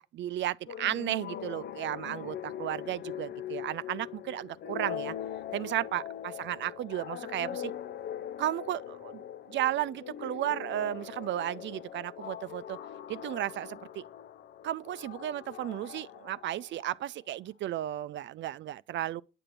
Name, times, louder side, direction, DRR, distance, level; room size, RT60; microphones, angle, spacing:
voice 1, 0.0-5.2 5.5-7.7 8.4-12.8 13.1-14.0 14.6-19.2, right 13 dB, 70° right, 0.5 m, -34 dB
sound 1, 0.7-17.1, left 10 dB, 60° left, 0.5 m, -41 dB
9.9 x 6.0 x 6.8 m
cardioid pair, 90°, 20 cm